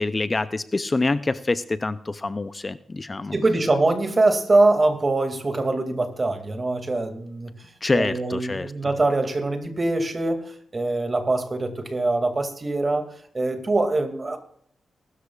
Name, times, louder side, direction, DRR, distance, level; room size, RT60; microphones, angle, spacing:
voice 1, 0.0-3.3 7.8-8.7, left 3 dB, 30° left, 13 dB, 0.5 m, -26 dB
voice 2, 3.3-7.5 7.9-13.1 13.3-14.4, right 2 dB, 35° right, 5 dB, 2.3 m, -23 dB
20.5 x 13.0 x 2.4 m, 0.63 s
cardioid pair, 85°, 0 cm